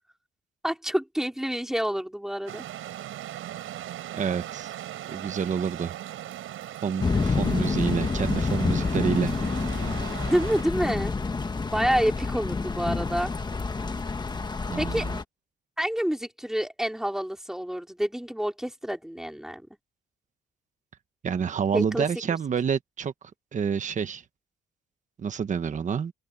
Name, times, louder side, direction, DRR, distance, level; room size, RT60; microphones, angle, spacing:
voice 1, 0.6-2.6 10.2-11.2 11.7-13.3 14.8-15.1 15.8-19.7 21.7-22.1, equal, ahead, 3.8 m, -28 dB
sound 1, 2.5-10.6, right 13 dB, 85° right, 5.5 m, -39 dB
voice 2, 4.1-4.7 5.1-6.0 6.8-9.3 14.7-15.2 21.2-23.1 23.5-24.2 25.2-26.1, right 7 dB, 35° right, 1.2 m, -28 dB
sound 2, 7.0-15.2, left 4 dB, 20° left, 1.4 m, -28 dB
open air
cardioid pair, 145°, 21 cm